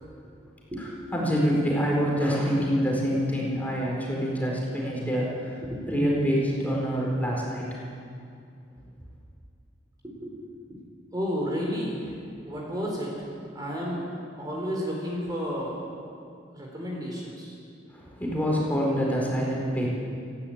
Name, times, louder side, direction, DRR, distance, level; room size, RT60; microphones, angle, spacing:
voice 1, 1.1-5.6 5.9-7.7 17.9-19.9, equal, 10° left, -4 dB, 4.4 m, -26 dB
voice 2, 5.6-5.9 10.0-10.4 11.1-12.1 12.5-13.1 13.5-14.1 14.4-15.8 16.5-17.5, equal, 20° right, -2 dB, 3.9 m, -32 dB
18.5 x 16.0 x 8.8 m, 2.4 s
head